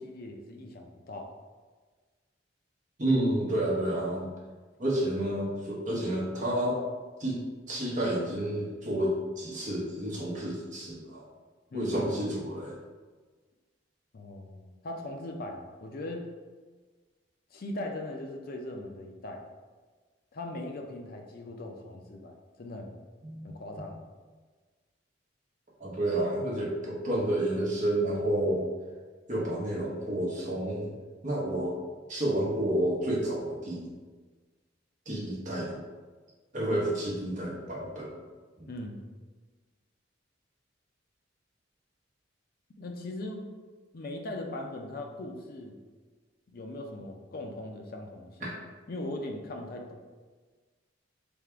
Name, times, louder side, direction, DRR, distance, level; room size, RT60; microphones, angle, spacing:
voice 1, 0.0-1.3 11.7-12.0 14.1-16.2 17.5-19.4 20.3-23.0 23.4-24.0 38.7-39.0 42.8-43.5 43.9-45.8 46.5-48.5 48.9-50.0, left 1 dB, 50° left, 2 dB, 0.5 m, -39 dB
voice 2, 3.0-4.3 4.8-6.8 7.2-7.4 7.7-11.2 11.7-12.8 23.2-23.5 23.8-23.9 25.8-28.7 29.3-30.9 31.2-31.8 32.1-33.9 35.1-35.8 36.5-38.1 38.6-38.7 48.4-48.6, right 1 dB, 40° right, -5 dB, 1.0 m, -30 dB
3.5 x 2.4 x 4.5 m, 1.4 s
head